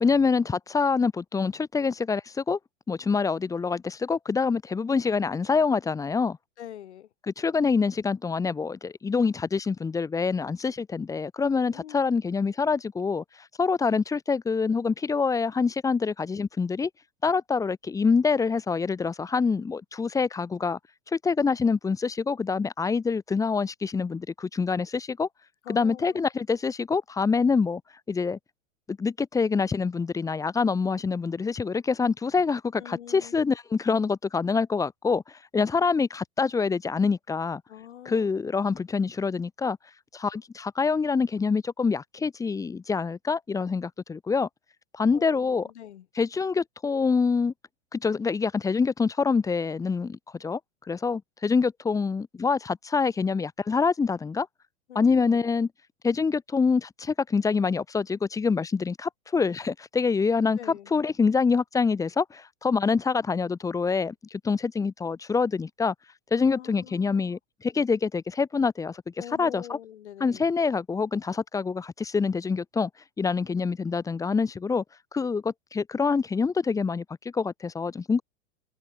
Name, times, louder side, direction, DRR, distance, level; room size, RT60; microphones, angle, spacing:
voice 1, 0.0-2.6 2.9-6.4 7.4-16.9 17.2-20.8 21.1-25.3 25.7-27.8 28.1-28.4 28.9-37.6 38.1-39.8 40.1-44.5 44.9-45.7 46.2-47.5 47.9-50.6 50.9-54.5 54.9-55.7 56.0-60.6 60.9-65.9 66.3-69.8 70.2-72.9 73.2-74.8 75.1-78.2, left 5 dB, 10° left, 0.6 m, -26 dB
voice 2, 6.6-7.1 11.7-12.2 25.6-26.2 32.8-33.3 37.7-38.3 45.1-46.1 54.9-55.4 60.6-60.9 66.4-67.4 69.2-70.5, left 11 dB, 80° left, 1.8 m, -44 dB
hypercardioid pair, 110°, 34 cm